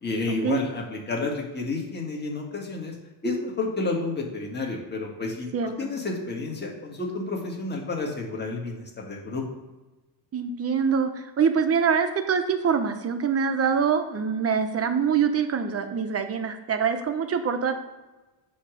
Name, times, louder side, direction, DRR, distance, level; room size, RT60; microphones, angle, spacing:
voice 1, 0.0-2.9 3.2-9.4, left 3 dB, 20° left, 0 dB, 1.7 m, -30 dB
voice 2, 5.5-5.9 10.3-17.8, right 6 dB, 30° right, 7 dB, 0.9 m, -24 dB
8.4 x 3.1 x 6.3 m, 1.1 s
cardioid pair, 135°, 45 cm